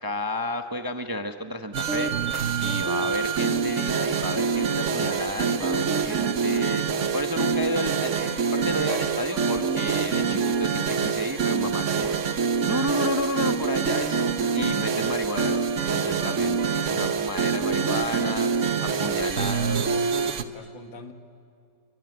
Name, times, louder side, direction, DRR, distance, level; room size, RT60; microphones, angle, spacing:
voice 1, 0.0-16.6 16.9-20.1, left 1 dB, 15° right, 7 dB, 0.8 m, -32 dB
sound 1, 1.6-3.6, right 2 dB, 30° right, 2.4 m, -47 dB
sound 2, 1.7-20.4, right 6 dB, 50° right, 1.2 m, -25 dB
voice 2, 18.7-21.1, left 5 dB, 85° left, 6 dB, 2.5 m, -45 dB
26.0 x 23.5 x 9.6 m, 2.5 s
omnidirectional pair, 2.0 m